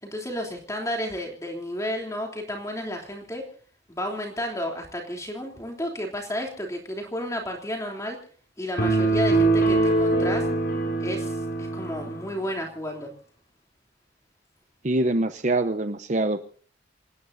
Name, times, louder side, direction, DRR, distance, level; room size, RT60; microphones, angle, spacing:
voice 1, 0.0-3.4 3.9-8.2 8.6-10.5 11.0-13.1, equal, 15° left, 1 dB, 3.2 m, -32 dB
sound 1, 8.8-12.3, right 2 dB, 55° left, 6.4 m, -23 dB
voice 2, 14.8-16.4, right 2 dB, 40° right, 9 dB, 0.8 m, -24 dB
28.0 x 18.5 x 2.7 m, 0.43 s
head